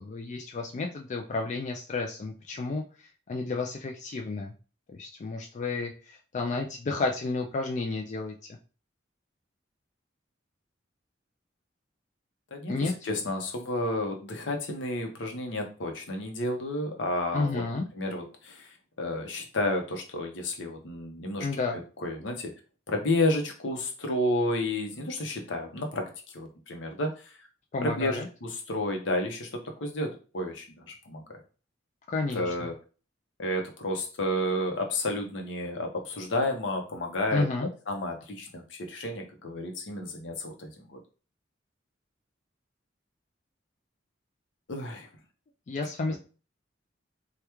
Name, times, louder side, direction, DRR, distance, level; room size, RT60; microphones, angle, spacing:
voice 1, 0.0-4.5 4.9-8.3 12.7-12.9 17.3-17.9 21.4-21.8 27.7-28.3 32.1-32.5 37.3-37.7 45.7-46.2, left 3 dB, 40° left, 2 dB, 0.3 m, -31 dB
voice 2, 12.5-17.6 17.9-21.5 22.0-22.5 22.9-27.5 27.8-31.4 32.3-32.7 33.4-37.5 37.9-41.0 44.7-45.1 46.1-46.2, left 1 dB, 75° left, 3 dB, 0.8 m, -31 dB
3.4 x 2.3 x 2.9 m, 0.36 s
head